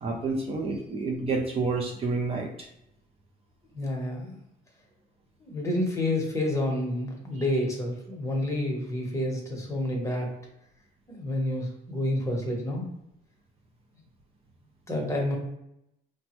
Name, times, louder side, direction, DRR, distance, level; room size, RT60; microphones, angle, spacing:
voice 1, 0.0-2.7, right 3 dB, 35° right, 0 dB, 0.5 m, -29 dB
voice 2, 3.7-4.4 5.4-10.3 11.1-12.9 14.9-15.4, left 1 dB, 15° left, -1 dB, 0.9 m, -29 dB
3.2 x 2.1 x 2.9 m, 0.81 s
cardioid pair, 110°, 17 cm